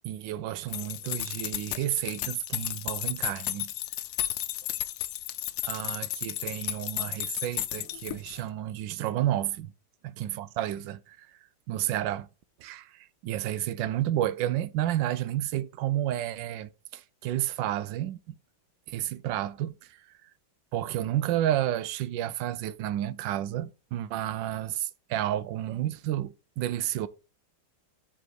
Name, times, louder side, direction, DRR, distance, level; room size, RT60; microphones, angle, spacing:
voice 1, 0.0-3.7 5.6-9.7 10.2-11.3 11.7-12.3 12.6-18.4 18.9-20.0 20.7-27.1, right 12 dB, 75° right, 1.3 m, -31 dB
sound 1, 0.7-8.4, left 14 dB, 80° left, 1.3 m, -34 dB
7.8 x 4.1 x 6.2 m
omnidirectional pair, 2.1 m